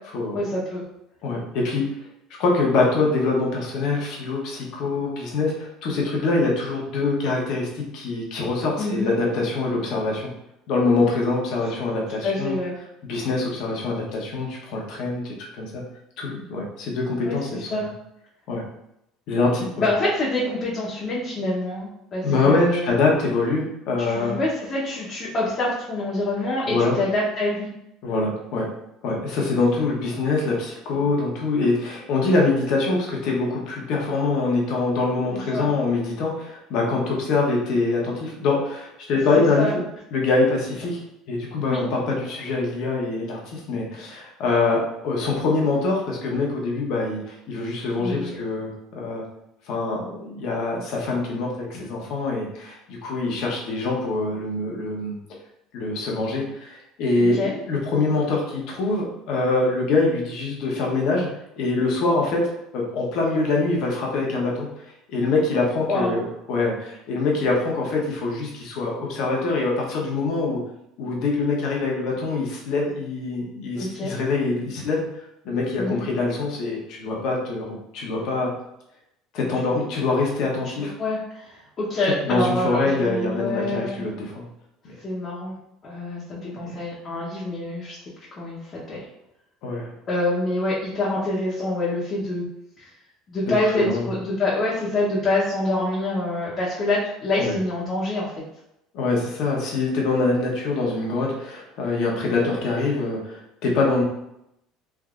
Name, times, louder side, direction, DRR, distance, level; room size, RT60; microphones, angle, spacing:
voice 1, 0.3-0.9 8.8-9.1 12.2-12.8 17.2-17.4 17.7-17.9 19.8-22.9 24.1-27.7 35.5-35.7 39.3-39.7 41.7-41.8 48.0-48.4 57.2-57.5 65.8-66.2 73.8-74.1 75.8-76.0 80.8-84.0 85.0-85.5 85.8-88.0 88.3-89.0 90.1-92.4 92.8-92.9 93.3-98.4, left 2 dB, 35° left, -8 dB, 0.9 m, -26 dB
voice 2, 1.2-1.8 2.4-10.3 10.7-12.6 13.0-15.8 16.2-17.9 18.5-18.6 19.3-19.9 22.2-24.3 26.7-27.0 28.0-28.7 29.0-39.8 40.1-41.0 41.3-49.2 49.7-55.2 55.7-61.3 61.6-62.4 62.7-64.7 65.1-66.2 66.5-70.6 71.0-75.0 75.4-78.5 79.3-80.9 82.2-84.4 84.8-85.0 86.3-86.8 89.6-89.9 93.7-94.1 97.4-97.6 98.9-104.0, left 3 dB, 65° left, -1 dB, 0.9 m, -24 dB
3.5 x 2.6 x 2.4 m, 0.82 s
supercardioid pair, 120°, 0 cm